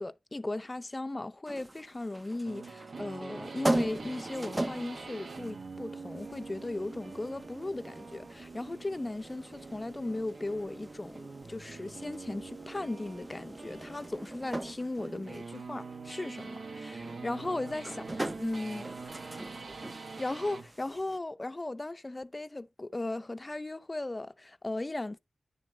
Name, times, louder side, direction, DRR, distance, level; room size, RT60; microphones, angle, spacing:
voice 1, 0.0-18.9 20.2-25.2, left 2 dB, 25° left, 0.6 m, -37 dB
sound 1, 1.5-21.2, right 1 dB, 20° right, 0.7 m, -40 dB
sound 2, 2.4-20.7, right 4 dB, 70° right, 1.3 m, -45 dB
10.5 x 7.1 x 2.8 m
wide cardioid pair, 110°, 0 cm